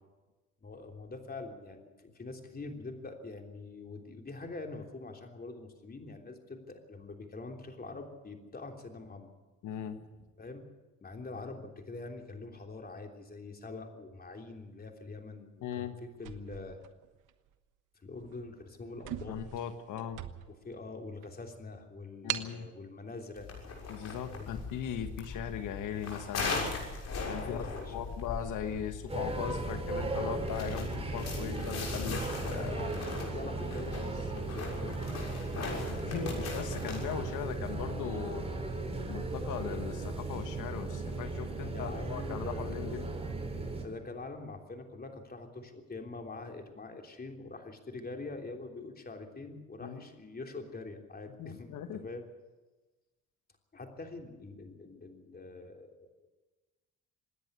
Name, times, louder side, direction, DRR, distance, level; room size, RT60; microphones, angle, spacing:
voice 1, 0.6-9.3 10.4-10.6 11.0-16.8 18.0-19.4 20.5-23.5 24.3-24.5 27.4-28.1 32.6-35.0 41.7-43.1 43.8-51.7 51.9-52.2 53.7-56.1, left 3 dB, 30° left, 3 dB, 3.4 m, -44 dB
voice 2, 9.6-10.0 15.6-16.0 19.3-20.2 22.2-22.7 23.9-26.6 27.3-32.8 35.5-38.5 39.1-43.1 49.8-50.1 51.4-52.1, left 9 dB, 80° left, 8 dB, 1.5 m, -39 dB
sound 1, 16.2-17.5 18.1-18.3 18.6-18.7 19.0-20.7 21.2-21.3 22.3-22.6, right 12 dB, 85° right, 1.2 m, -40 dB
sound 2, 23.4-37.6, left 4 dB, 60° left, 6.6 m, -40 dB
sound 3, 29.1-43.8, right 3 dB, 20° right, 4.0 m, -37 dB
26.5 x 10.0 x 9.8 m, 1.2 s
cardioid pair, 90°, 30 cm